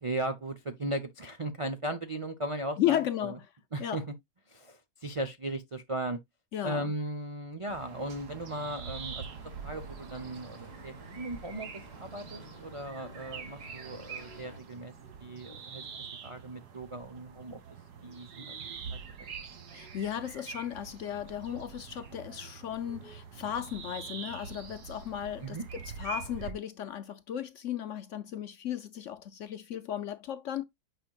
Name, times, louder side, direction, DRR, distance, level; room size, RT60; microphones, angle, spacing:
voice 1, 0.0-3.4 3.7-4.0 4.5-6.2 6.6-9.3 9.6-14.9 15.2-15.8 16.2-17.6 18.0-18.6 18.9-19.0 25.4-25.6, right 1 dB, 50° right, 0.3 m, -37 dB
voice 2, 2.8-3.5 3.8-4.0 6.5-6.9 19.7-30.6, left 11 dB, 65° left, 0.8 m, -35 dB
sound 1, 7.7-26.5, right 6 dB, 80° right, 1.9 m, -45 dB
sound 2, 9.2-14.6, equal, 25° right, 2.2 m, -51 dB
9.1 x 5.1 x 2.3 m
omnidirectional pair, 1.7 m